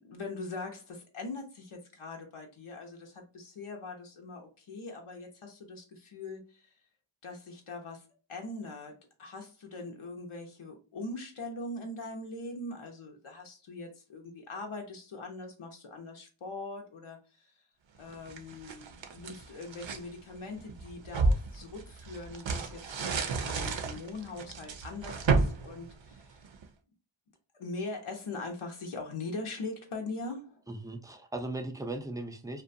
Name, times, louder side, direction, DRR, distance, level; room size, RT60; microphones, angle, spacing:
voice 1, 0.0-6.7 7.2-17.5 18.0-26.4 27.6-30.6, left 3 dB, 85° left, 0.7 m, -42 dB
sound 1, 18.1-20.1 20.6-26.6, right 3 dB, 70° right, 0.5 m, -32 dB
voice 2, 30.7-32.6, right 2 dB, 10° right, 0.4 m, -38 dB
2.5 x 2.2 x 2.5 m
wide cardioid pair, 45°, 48 cm